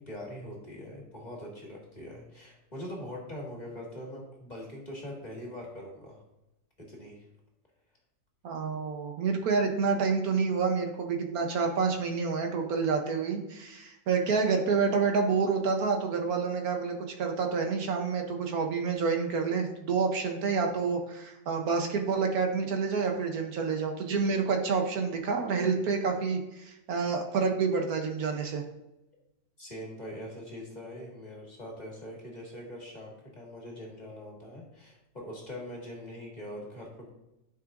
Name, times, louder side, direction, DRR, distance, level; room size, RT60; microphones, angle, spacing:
voice 1, 0.0-6.2 6.9-7.3 29.6-37.1, left 1 dB, 25° left, -3 dB, 1.9 m, -42 dB
voice 2, 8.4-28.6, right 5 dB, 70° right, 4 dB, 1.3 m, -28 dB
11.5 x 5.7 x 2.5 m, 0.92 s
omnidirectional pair, 1.7 m